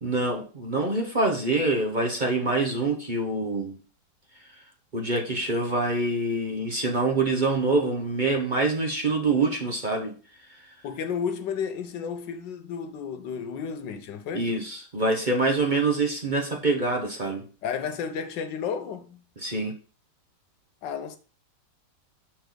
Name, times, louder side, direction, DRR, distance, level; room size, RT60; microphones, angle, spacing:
voice 1, 0.0-3.8 4.9-10.1 10.5-10.6 14.3-17.5 19.4-19.7, right 3 dB, 35° right, 0.9 m, -25 dB
voice 2, 10.8-14.5 17.6-19.2 20.8-21.2, left 7 dB, 85° left, 1.5 m, -32 dB
6.9 x 5.8 x 3.9 m
omnidirectional pair, 1.9 m